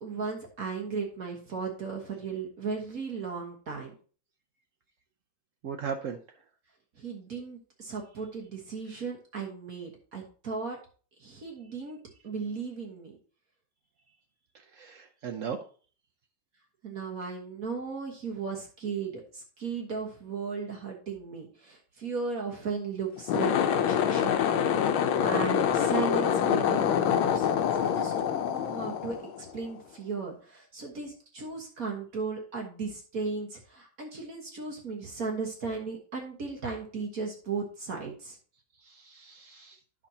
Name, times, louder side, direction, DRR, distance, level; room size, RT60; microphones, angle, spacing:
voice 1, 0.0-3.9 6.9-10.8 11.2-12.0 12.2-13.2 16.8-24.3 25.2-38.4, right 5 dB, 50° right, 0 dB, 1.7 m, -36 dB
voice 2, 5.6-6.2 14.8-15.6 38.9-39.8, right 7 dB, 65° right, 4 dB, 0.7 m, -37 dB
sound 1, 23.2-29.7, left 8 dB, 90° left, 1.6 m, -26 dB
10.5 x 6.1 x 2.8 m, 0.40 s
omnidirectional pair, 2.2 m